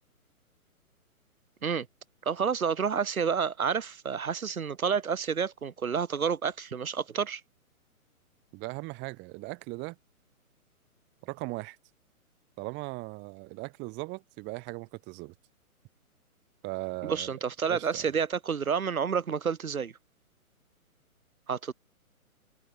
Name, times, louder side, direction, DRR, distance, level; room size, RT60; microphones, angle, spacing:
voice 1, 2.2-7.4 17.0-19.9 21.5-21.7, right 6 dB, 70° right, 4.4 m, -29 dB
voice 2, 8.5-10.0 11.2-11.8 12.6-15.3 16.6-17.3 17.7-18.1, right 25 dB, 25° right, 4.2 m, -38 dB
hypercardioid pair, 135°, 44 cm